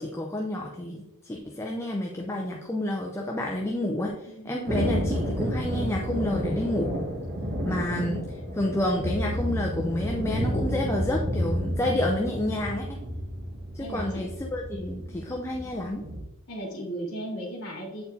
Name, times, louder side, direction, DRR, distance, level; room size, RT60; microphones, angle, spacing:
voice 1, 0.0-6.9 7.6-13.0 13.7-16.0, left 1 dB, 10° left, 0 dB, 0.6 m, -29 dB
Thunder, 4.7-16.2, equal, 50° right, 1.4 m, -31 dB
voice 2, 16.5-18.0, right 1 dB, 55° left, -4 dB, 2.1 m, -36 dB
8.2 x 4.4 x 4.0 m, 0.94 s
head